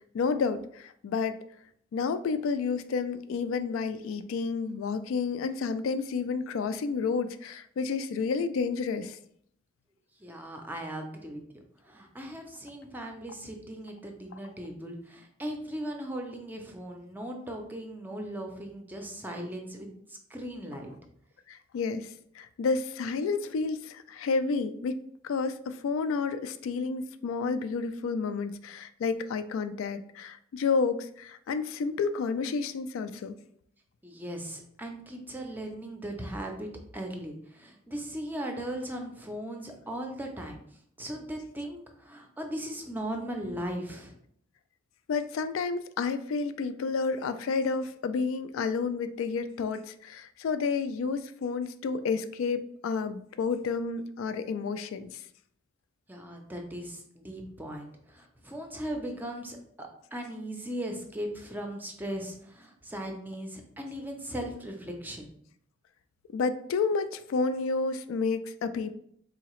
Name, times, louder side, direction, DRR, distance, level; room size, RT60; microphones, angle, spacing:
voice 1, 0.1-1.4 1.9-9.2 21.5-33.3 45.1-55.2 66.3-69.0, left 4 dB, 75° left, 11 dB, 0.3 m, -30 dB
voice 2, 10.2-11.4 11.8-20.9 34.0-40.6 41.0-44.2 56.1-65.3, right 1 dB, 10° right, 2 dB, 0.5 m, -38 dB
3.9 x 2.8 x 3.0 m, 0.67 s
head